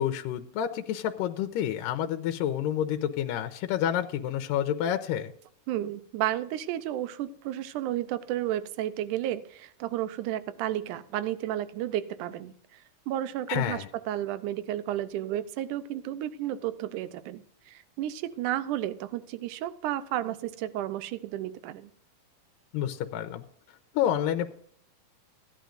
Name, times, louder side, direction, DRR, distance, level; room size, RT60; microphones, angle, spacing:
voice 1, 0.0-5.3 13.5-13.9 22.7-23.4 23.9-24.5, left 10 dB, 85° left, 6 dB, 2.2 m, -29 dB
voice 2, 5.7-12.8 13.1-21.9, right 12 dB, 75° right, 13 dB, 2.0 m, -32 dB
16.5 x 10.5 x 2.6 m, 0.63 s
omnidirectional pair, 4.0 m